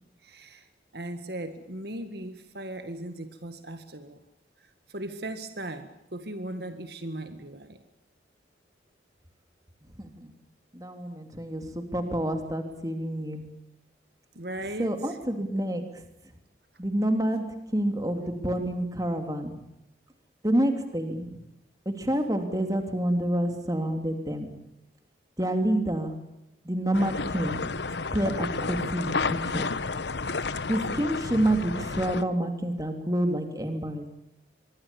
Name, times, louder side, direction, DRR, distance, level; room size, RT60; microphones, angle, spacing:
voice 1, 0.2-0.7 0.9-4.2 4.6-7.8 14.4-15.2, right 1 dB, 60° right, 9 dB, 1.9 m, -38 dB
voice 2, 10.0-10.3 10.7-13.4 14.8-15.8 16.8-17.4 17.7-19.6 20.4-21.4 21.8-24.5 25.4-26.2 26.6-27.6 28.1-29.7 30.7-34.0, right 1 dB, 20° right, 6 dB, 3.2 m, -28 dB
sound 1, 26.9-32.2, left 4 dB, 70° left, 1.0 m, -31 dB
24.5 x 23.5 x 7.1 m, 0.88 s
head